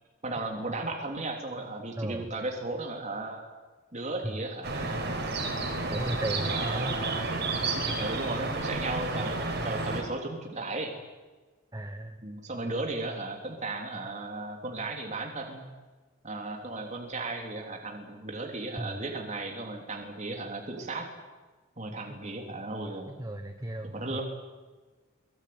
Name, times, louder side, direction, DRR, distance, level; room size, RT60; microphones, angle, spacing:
voice 1, 0.2-3.4 3.9-5.3 6.5-7.2 7.9-10.9 12.2-15.6 16.2-21.1 21.8-23.1 23.8-24.2, right 2 dB, 35° right, 2 dB, 3.3 m, -35 dB
voice 2, 2.0-2.3 4.2-4.3 5.9-7.1 11.7-12.2 18.8-18.9 22.1-22.2 23.1-24.2, right 1 dB, 15° right, 7 dB, 1.2 m, -35 dB
sound 1, 4.6-10.0, right 3 dB, 55° right, 4.8 m, -31 dB
23.0 x 21.0 x 9.5 m, 1.3 s
head